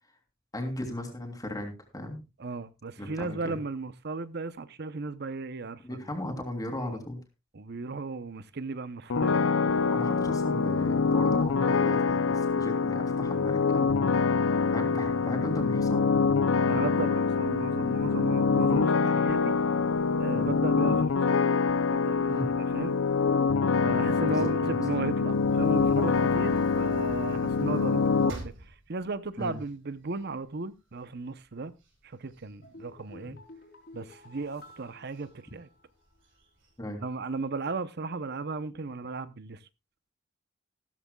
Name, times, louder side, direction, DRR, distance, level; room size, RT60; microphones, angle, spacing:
voice 1, 0.5-2.2 3.0-3.6 5.8-7.2 9.9-14.1 14.7-16.1 20.3-20.5 22.3-22.5 24.2-25.1 29.4-29.6 36.8-37.0, left 1 dB, 20° left, 3.2 m, -36 dB
voice 2, 2.4-6.0 6.8-7.0 7.5-9.5 16.7-19.6 20.2-21.4 21.9-23.0 23.8-31.7 32.0-33.4 33.9-35.7 37.0-39.6, right 3 dB, 55° right, 0.8 m, -36 dB
sound 1, 9.1-28.3, left 4 dB, 75° left, 0.6 m, -25 dB
sound 2, 25.3-30.5 31.0-31.1 31.4-33.5 34.0-34.5 35.1-35.2 35.5-35.6 36.1-36.7, right 1 dB, 75° right, 4.8 m, -47 dB
sound 3, 32.6-36.0 36.3-36.4, left 2 dB, 55° left, 3.9 m, -52 dB
15.0 x 13.5 x 2.3 m
head